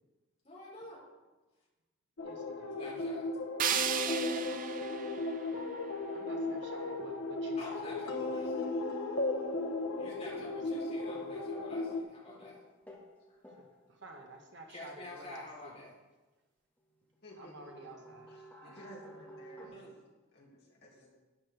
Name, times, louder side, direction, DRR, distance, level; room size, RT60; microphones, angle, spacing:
voice 1, 0.4-1.0 2.8-3.3 3.9-4.5 5.5-5.6 7.6-8.8 10.0-12.6 13.3-13.4 14.7-15.9 18.6-18.7 19.6-19.9, left 2 dB, 30° left, -6 dB, 3.8 m, -49 dB
sound 1, 2.2-12.0, left 2 dB, 80° left, 1.1 m, -36 dB
voice 2, 2.2-2.8 6.1-7.9 13.6-15.8 17.4-18.3, right 2 dB, 55° right, 2 dB, 1.4 m, -51 dB
sound 2, 3.6-6.6, right 9 dB, 40° right, 0.4 m, -36 dB
sound 3, 10.3-10.8 11.1-13.1 13.4-13.8 16.8-16.9 17.1-19.7, right 1 dB, 10° left, 2.0 m, -53 dB
voice 3, 17.2-19.9 20.3-21.1, equal, 50° left, -4 dB, 2.5 m, -55 dB
12.0 x 9.8 x 3.5 m, 1.2 s
head